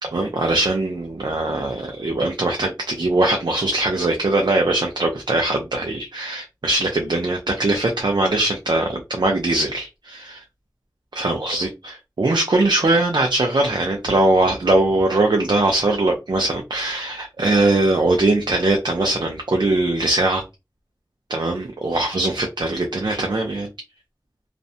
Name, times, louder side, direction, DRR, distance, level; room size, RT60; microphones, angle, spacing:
voice 1, 0.0-10.4 11.1-20.4 21.3-23.7, right 2 dB, 85° right, 2 dB, 0.5 m, -21 dB
2.5 x 2.1 x 2.6 m, 0.24 s
wide cardioid pair, 45°, 8 cm